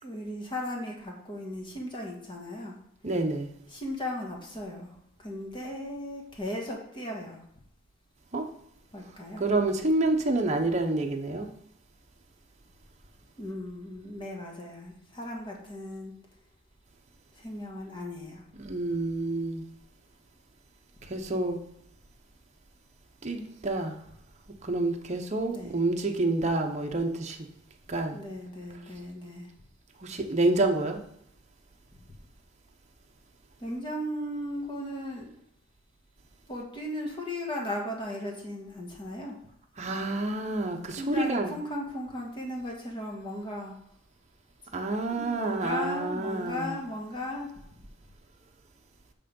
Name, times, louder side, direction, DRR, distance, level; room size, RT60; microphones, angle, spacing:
voice 1, 0.0-2.8 3.7-4.9 5.2-7.4 8.9-9.4 13.4-16.1 17.4-18.4 25.5-25.8 28.1-29.5 32.1-32.2 33.6-35.3 36.5-39.4 41.0-43.7 44.7-44.8 45.1-47.5, left 1 dB, 25° left, -1 dB, 1.6 m, -36 dB
voice 2, 3.0-3.5 8.3-8.5 9.4-11.5 18.6-19.6 21.1-21.6 23.2-24.0 24.6-27.5 27.9-28.2 30.0-31.0 39.8-41.5 44.7-46.7, right 2 dB, 35° right, 3 dB, 0.8 m, -28 dB
8.3 x 3.7 x 5.3 m, 0.74 s
head